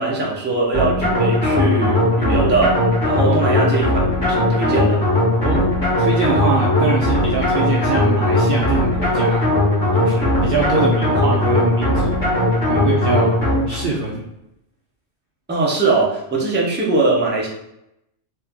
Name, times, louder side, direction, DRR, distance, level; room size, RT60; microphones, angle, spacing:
voice 1, 0.0-2.8 3.0-5.0 15.5-17.5, right 3 dB, 10° right, -4 dB, 0.6 m, -21 dB
sound 1, 0.7-13.9, left 1 dB, 35° left, 1.7 m, -18 dB
voice 2, 6.0-9.5 10.0-12.2 12.7-14.2, right 4 dB, 60° right, -3 dB, 0.7 m, -23 dB
3.2 x 2.8 x 3.5 m, 0.84 s
omnidirectional pair, 1.3 m